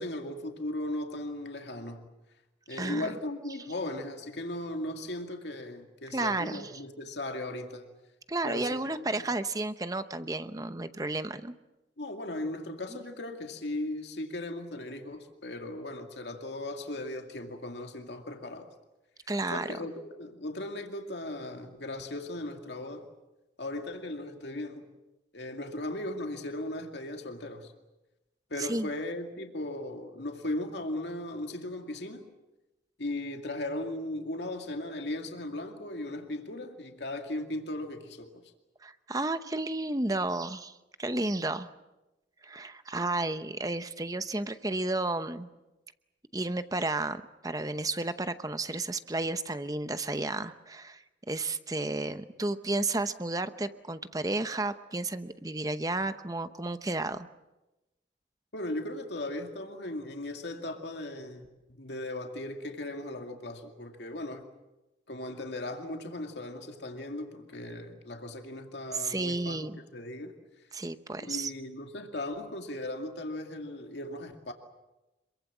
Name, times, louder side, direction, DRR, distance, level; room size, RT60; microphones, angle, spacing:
voice 1, 0.0-2.0 2.7-7.9 8.4-9.1 12.0-18.7 19.5-23.1 23.6-24.9 25.3-27.7 28.5-32.3 33.0-38.4 58.5-64.5 65.1-70.3 71.2-74.5, left 1 dB, 75° left, 4 dB, 2.3 m, -37 dB
voice 2, 2.7-3.1 6.1-6.7 8.3-11.5 19.3-19.8 28.6-28.9 38.8-41.7 42.4-45.5 46.3-51.0 51.3-57.3 68.9-69.8 70.7-71.5, right 2 dB, 20° right, 11 dB, 0.8 m, -32 dB
26.5 x 23.0 x 7.4 m, 1.0 s
head